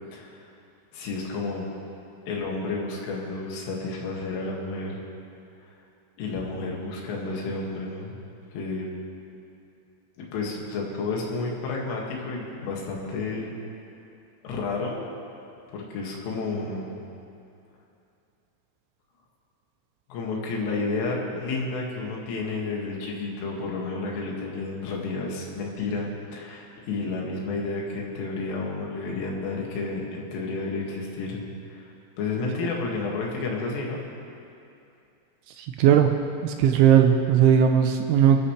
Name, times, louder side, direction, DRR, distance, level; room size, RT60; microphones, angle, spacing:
voice 1, 0.1-0.5 0.9-1.7 2.3-5.0 6.2-8.1 8.5-8.9 10.2-13.5 14.4-15.0 15.7-16.9 20.1-31.4 31.7-31.9 32.2-34.0 35.8-36.0, left 3 dB, 80° left, -2 dB, 4.6 m, -31 dB
voice 2, 35.8-36.1 36.4-38.4, right 9 dB, 80° right, 5 dB, 2.9 m, -18 dB
28.5 x 13.0 x 3.3 m, 2.6 s
omnidirectional pair, 5.7 m